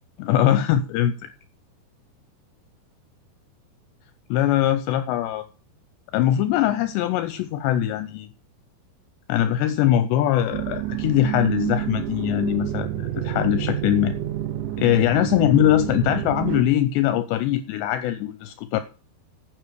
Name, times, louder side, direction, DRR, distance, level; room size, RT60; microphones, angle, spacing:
voice 1, 0.2-1.3 4.3-5.4 6.1-8.3 9.3-14.2 14.8-18.8, left 12 dB, 80° left, 11 dB, 2.7 m, -22 dB
Jaws of life, 10.5-16.6, right 13 dB, 80° right, 3.7 m, -28 dB
9.5 x 7.5 x 6.7 m, 0.36 s
omnidirectional pair, 5.3 m